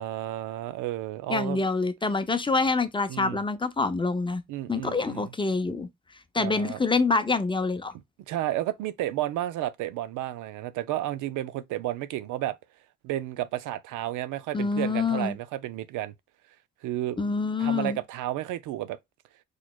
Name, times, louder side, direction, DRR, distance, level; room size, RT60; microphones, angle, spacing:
voice 1, 0.0-1.6 3.1-3.4 4.5-5.3 6.4-6.8 8.3-12.6 13.0-16.1 16.8-17.2 17.6-19.0, right 14 dB, 85° right, 0.5 m, -32 dB
voice 2, 1.3-4.4 4.7-5.9 6.3-7.9 14.5-15.4 17.2-18.0, left 3 dB, 15° left, 0.5 m, -26 dB
4.0 x 3.2 x 2.3 m
cardioid pair, 90°, 30 cm